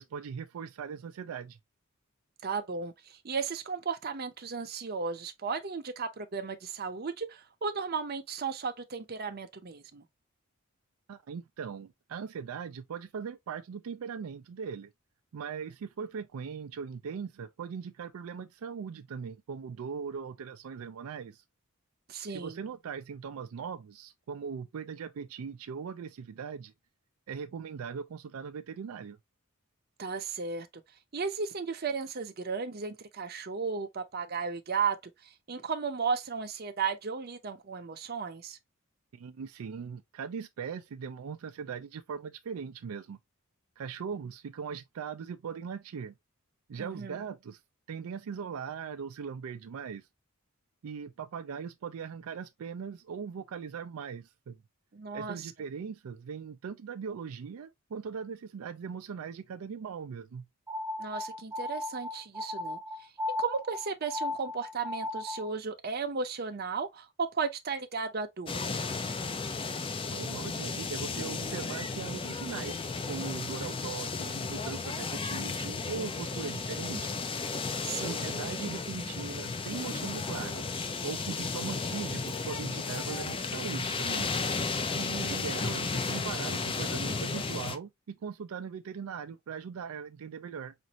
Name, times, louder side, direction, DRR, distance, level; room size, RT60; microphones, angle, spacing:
voice 1, 0.0-1.6 11.1-14.9 15.3-21.4 22.3-26.7 27.3-29.2 39.1-43.2 43.8-46.1 46.7-47.6 47.9-50.1 50.8-54.6 55.1-60.5 70.1-77.2 78.0-80.7 81.0-84.3 85.3-90.7, right 6 dB, 80° right, 0.4 m, -40 dB
voice 2, 2.4-10.0 22.1-22.6 30.0-30.7 31.1-35.0 35.2-38.6 46.8-47.2 54.9-55.5 61.0-63.1 63.4-68.6 77.8-78.2 84.9-85.5, right 5 dB, 45° right, 0.6 m, -35 dB
sound 1, 60.7-65.6, left 2 dB, 15° right, 0.8 m, -36 dB
sound 2, 68.5-87.8, left 4 dB, 25° left, 0.4 m, -34 dB
5.1 x 2.5 x 2.8 m
head